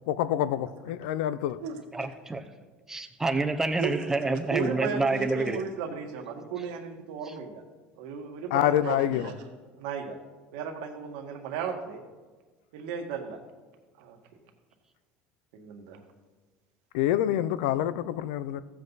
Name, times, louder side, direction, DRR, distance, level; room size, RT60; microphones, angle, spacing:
voice 1, 0.1-1.6 8.5-9.3 16.9-18.6, left 12 dB, 85° left, 0.5 m, -26 dB
voice 2, 1.9-2.5 2.9-5.6, right 3 dB, 10° right, 0.8 m, -28 dB
voice 3, 4.5-7.6 8.0-9.4 9.8-10.2 10.5-12.0 12.7-13.4 14.0-14.2 15.5-16.0, right 6 dB, 80° right, 1.6 m, -35 dB
15.0 x 7.7 x 4.0 m
cardioid pair, 135°, 4 cm